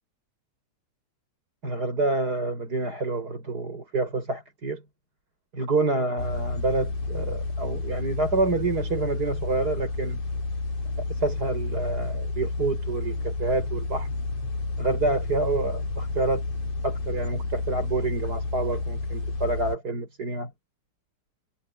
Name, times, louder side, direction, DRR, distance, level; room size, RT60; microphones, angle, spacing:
voice 1, 1.6-4.8 5.5-10.2 11.1-14.1 14.8-16.4 16.8-20.5, right 3 dB, 30° right, 6.8 m, -28 dB
sound 1, 6.2-19.8, left 3 dB, 75° left, 7.8 m, -31 dB
omnidirectional pair, 3.5 m